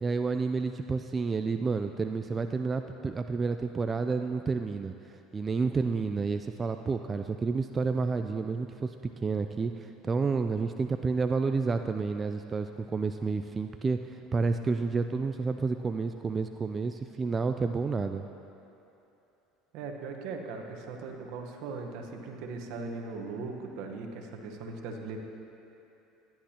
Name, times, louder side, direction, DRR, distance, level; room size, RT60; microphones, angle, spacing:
voice 1, 0.0-4.9 5.3-8.9 9.2-18.3, right 4 dB, 25° right, 7 dB, 0.4 m, -30 dB
voice 2, 19.7-25.2, right 4 dB, 70° right, 3 dB, 1.1 m, -39 dB
15.5 x 10.5 x 2.9 m, 2.9 s
hypercardioid pair, 85°, 0 cm